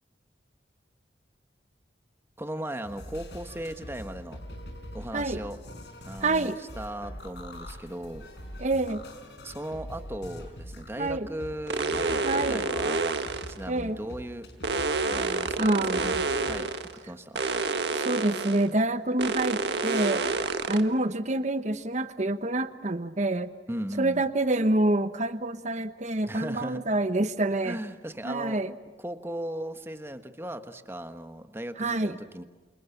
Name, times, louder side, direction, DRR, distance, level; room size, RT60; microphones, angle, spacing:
voice 1, 2.4-4.4 4.9-5.6 6.0-8.3 9.4-13.0 13.5-14.5 15.1-16.1 16.4-17.4 23.7-24.3 26.2-26.8 27.6-28.6 29.0-32.4, right 1 dB, 15° right, 8 dB, 1.4 m, -37 dB
sound 1, 2.8-16.6, equal, 70° left, 5.4 m, -43 dB
voice 2, 6.2-6.6 8.6-9.0 11.0-11.3 12.2-12.7 13.7-14.0 15.6-16.2 17.9-20.2 20.7-23.5 24.0-27.8 28.2-28.7 31.8-32.2, right 2 dB, 40° right, 11 dB, 1.2 m, -27 dB
sound 2, 11.7-13.6 14.6-16.9 17.3-18.7 19.2-20.8, right 3 dB, 65° right, 1.7 m, -28 dB
28.5 x 28.0 x 6.0 m, 1.3 s
head